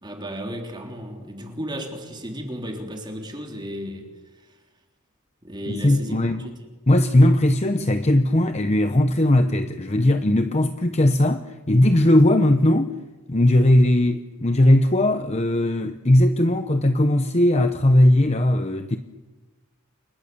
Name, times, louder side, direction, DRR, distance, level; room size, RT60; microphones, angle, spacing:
voice 1, 0.0-4.1 4.4-4.6 5.4-6.6, equal, 20° right, 3.4 m, -34 dB
voice 2, 5.7-6.5 6.9-12.9 13.3-19.0, left 1 dB, 30° left, 0.9 m, -18 dB
29.0 x 25.5 x 7.0 m
head